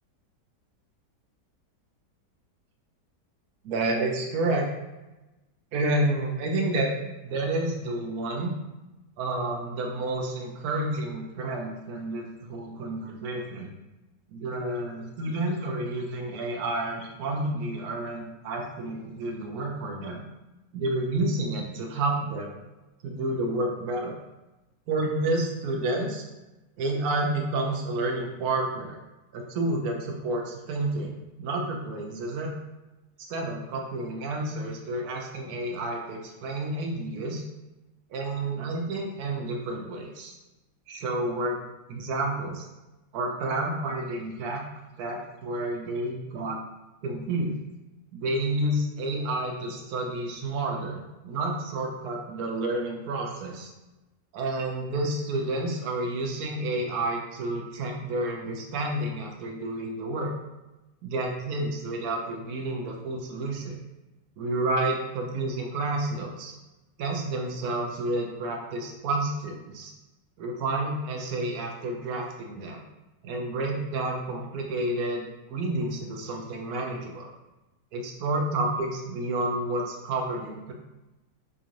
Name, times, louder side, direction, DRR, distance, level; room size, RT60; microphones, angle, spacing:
voice 1, 3.6-4.7 5.7-6.9 7.2-8.6 9.2-13.7 14.3-20.2 20.7-22.5 23.0-24.2 24.9-26.3 26.8-29.0 29.3-32.5 33.2-37.4 38.1-40.4 40.9-41.6 41.9-42.6 43.1-44.6 45.0-46.6 47.0-47.5 48.1-53.7 54.3-60.3 61.0-63.8 64.4-66.5 67.0-69.9 70.4-72.8 73.2-77.3 77.9-80.7, right 2 dB, 70° right, 1 dB, 1.0 m, -30 dB
3.7 x 2.9 x 2.5 m, 1.0 s
omnidirectional pair, 1.9 m